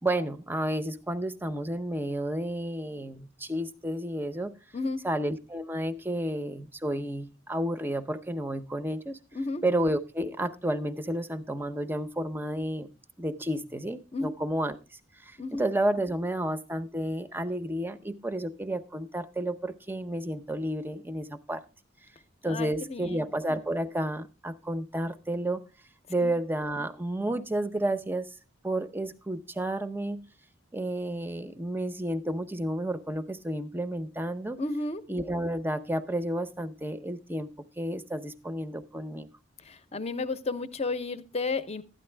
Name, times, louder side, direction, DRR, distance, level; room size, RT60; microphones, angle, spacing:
voice 1, 0.0-4.5 5.0-9.2 9.6-12.9 13.2-14.8 15.2-21.6 22.4-25.6 26.1-28.3 28.6-30.3 30.7-34.6 35.1-37.5 37.8-39.3, right 1 dB, 10° right, 10 dB, 0.7 m, -31 dB
voice 2, 4.7-5.0 9.3-9.6 14.1-14.3 15.4-15.6 22.4-23.1 26.2-26.3 34.6-35.0 39.6-41.8, left 3 dB, 35° left, 12 dB, 0.8 m, -32 dB
12.5 x 9.7 x 3.3 m, 0.31 s
head